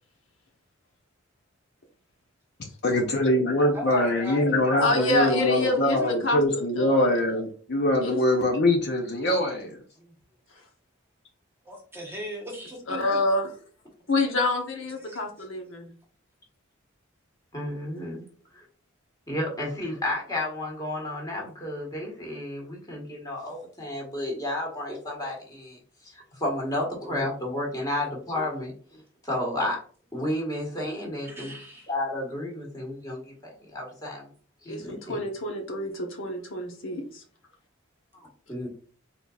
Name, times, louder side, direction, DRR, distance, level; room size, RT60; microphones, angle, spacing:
voice 1, 2.8-9.8, left 1 dB, 55° left, 0.7 m, -23 dB
voice 2, 3.7-6.1 10.0-10.1 11.6-13.2 15.1-15.2 31.2-31.9, left 1 dB, 10° right, 1.1 m, -37 dB
voice 3, 4.8-7.1 8.0-8.2 10.5-10.6 12.9-13.5 14.1-15.9 34.7-37.2, left 2 dB, 70° left, 1.0 m, -27 dB
voice 4, 17.5-18.2 18.5-18.6 19.3-29.8 30.1-31.6 31.9-33.3 33.7-34.3 34.6-35.2 38.1-38.7, left 1 dB, 20° left, 1.5 m, -32 dB
4.3 x 3.9 x 2.4 m
head